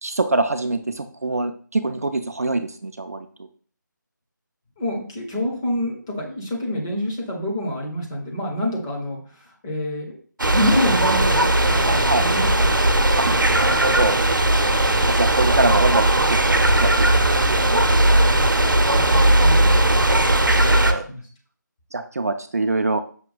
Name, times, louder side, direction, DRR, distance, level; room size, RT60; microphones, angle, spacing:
voice 1, 0.0-3.3 11.9-12.2 13.2-13.3 13.5-14.2 14.9-16.4 16.8-16.9 17.3-17.8 20.0-20.1 20.4-21.0 21.9-23.0, right 2 dB, 50° right, 8 dB, 0.4 m, -24 dB
voice 2, 4.8-10.2 10.5-12.7 18.9-19.7 21.1-21.2, left 1 dB, 10° left, -2 dB, 0.6 m, -27 dB
sound 1, 10.4-20.9, right 1 dB, 80° right, 0.7 m, -18 dB
5.8 x 2.2 x 3.9 m, 0.44 s
figure-of-eight pair, 160°, 11 cm